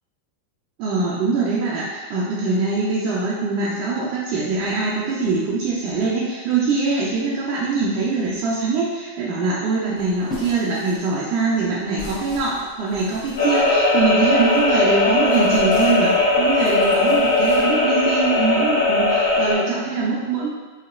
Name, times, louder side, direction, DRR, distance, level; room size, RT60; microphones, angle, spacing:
voice 1, 0.8-20.5, right 4 dB, 50° right, -6 dB, 0.5 m, -23 dB
sound 1, 9.9-14.7 15.2-17.7, left 2 dB, 40° left, 1.3 m, -39 dB
sound 2, 13.4-19.6, left 2 dB, 75° left, 0.8 m, -18 dB
2.9 x 2.8 x 2.5 m, 1.3 s
hypercardioid pair, 115°, 0 cm